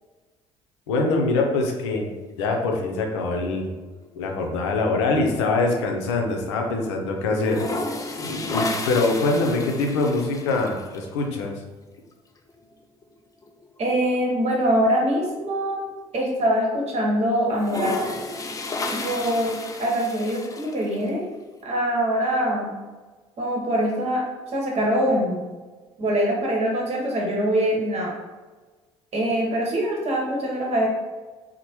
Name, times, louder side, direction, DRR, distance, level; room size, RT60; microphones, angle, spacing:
voice 1, 0.9-2.1 2.4-3.7 4.2-7.6 8.2-11.6, left 3 dB, 85° left, 2 dB, 0.5 m, -24 dB
sound 1, 3.3-4.1 4.4-6.5 6.7-6.8 7.3-11.0 12.5-12.6 13.0-13.1 13.4-15.8 16.3-16.4 17.4-21.1, left 2 dB, 25° left, 0.4 m, -33 dB
voice 2, 13.8-15.8 16.1-17.9 18.8-21.3 21.6-22.8 23.4-24.2 24.5-25.4 26.0-28.1 29.1-30.9, equal, 50° right, -1 dB, 1.0 m, -23 dB
2.9 x 2.0 x 2.9 m, 1.3 s
hypercardioid pair, 55°, 14 cm